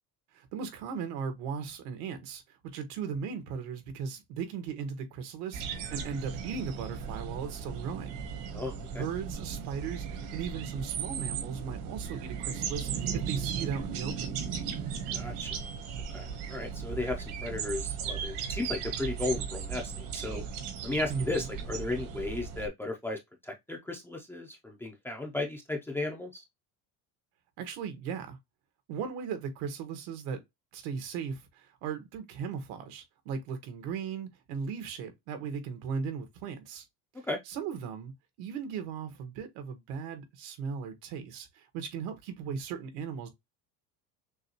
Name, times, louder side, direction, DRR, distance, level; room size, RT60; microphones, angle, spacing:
voice 1, 0.3-8.2 8.9-14.4 21.1-21.5 27.6-28.4 28.9-30.4 30.7-36.8 37.5-38.1 38.4-43.3, right 6 dB, 85° right, 1.4 m, -37 dB
sound 1, 5.5-22.7, right 7 dB, 60° right, 1.1 m, -36 dB
voice 2, 8.5-9.0 15.1-15.6 16.1-20.4 20.8-26.4 37.3-37.4, left 2 dB, 5° left, 0.4 m, -35 dB
6.3 x 2.2 x 2.9 m
cardioid pair, 170°, 37 cm